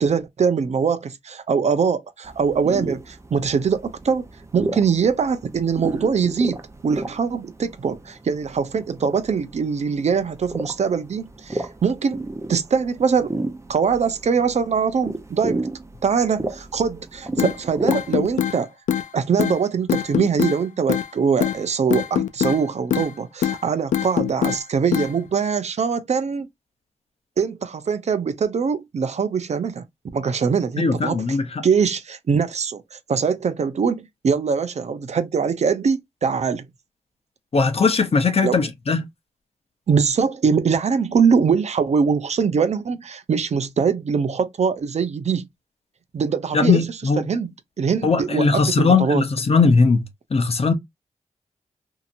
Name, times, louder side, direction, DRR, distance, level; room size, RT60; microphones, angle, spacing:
voice 1, 0.0-4.3 4.5-13.3 13.7-15.7 16.0-18.7 19.1-26.5 27.4-29.8 30.1-31.4 31.6-36.7 38.4-38.6 39.9-45.5 46.1-46.8 47.2-47.5 47.8-49.2, right 6 dB, 60° right, 0.6 m, -22 dB
sound 1, 2.2-18.4, right 2 dB, 25° right, 0.7 m, -33 dB
sound 2, 17.4-17.5 17.9-18.6 18.9-19.1 19.4-19.6 19.9-20.6 20.9-21.1 21.4-21.6 21.9-22.6 22.9-23.1 23.4-23.6 23.9-24.6 24.9-25.1, left 9 dB, 85° left, 0.4 m, -22 dB
voice 2, 30.8-31.6 37.5-39.0 46.5-47.3 48.0-50.0 50.3-50.7, left 4 dB, 55° left, 0.9 m, -19 dB
2.8 x 2.7 x 2.5 m
supercardioid pair, 40°, 13 cm